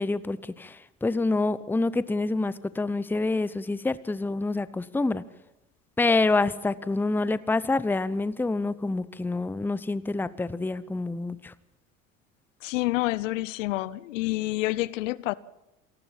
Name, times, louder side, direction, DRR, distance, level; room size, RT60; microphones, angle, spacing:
voice 1, 0.0-5.2 6.0-11.5, left 3 dB, 5° left, 0.8 m, -27 dB
voice 2, 12.6-15.3, left 19 dB, 65° left, 0.8 m, -28 dB
27.0 x 18.5 x 5.8 m
hypercardioid pair, 80°, 40 cm